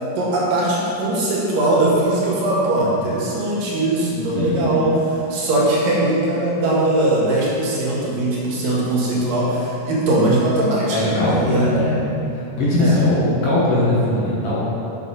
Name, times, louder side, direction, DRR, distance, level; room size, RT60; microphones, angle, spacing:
voice 1, 0.2-4.9 5.3-11.7 12.8-13.0, right 1 dB, 85° right, -5 dB, 3.5 m, -20 dB
voice 2, 4.3-4.8 10.9-12.0 12.3-14.7, left 1 dB, 55° left, -7 dB, 1.9 m, -20 dB
6.9 x 6.7 x 5.5 m, 2.8 s
omnidirectional pair, 3.8 m